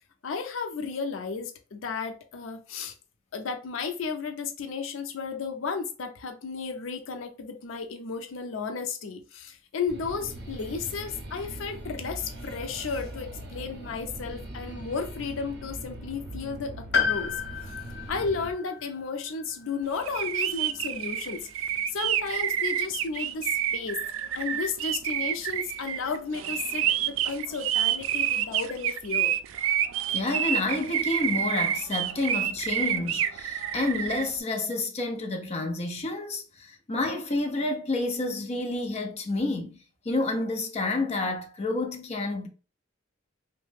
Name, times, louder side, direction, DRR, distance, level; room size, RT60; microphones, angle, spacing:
voice 1, 0.2-2.9 3.3-17.4 18.1-21.5 21.9-24.0 24.3-29.4, left 5 dB, 85° left, 0.5 m, -33 dB
sound 1, 9.9-18.5, right 1 dB, 55° right, 0.7 m, -41 dB
Piano, 16.9-20.8 21.1-21.2 22.3-22.4, left 5 dB, 60° left, 0.9 m, -32 dB
sound 2, 20.0-34.3, right 10 dB, 85° right, 0.3 m, -28 dB
voice 2, 30.1-39.8 40.0-42.5, left 2 dB, 35° left, 0.6 m, -29 dB
3.1 x 2.1 x 3.2 m
head